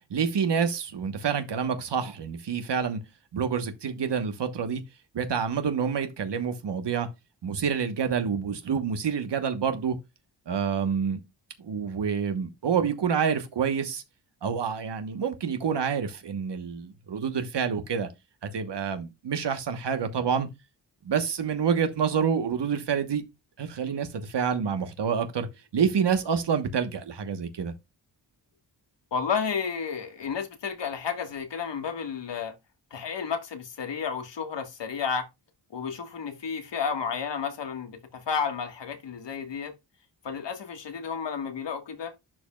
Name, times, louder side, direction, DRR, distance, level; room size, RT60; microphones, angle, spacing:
voice 1, 0.1-3.0 3.3-4.8 5.1-7.1 7.4-10.0 10.5-11.2 11.6-14.0 14.4-18.1 18.5-20.5 21.0-23.2 23.6-25.5 25.7-27.7, right 6 dB, 75° right, 1.3 m, -27 dB
voice 2, 29.1-32.5 32.9-35.3 35.7-39.7 40.2-42.1, left 6 dB, 80° left, 1.7 m, -32 dB
11.0 x 5.2 x 2.3 m
wide cardioid pair, 100°, 43 cm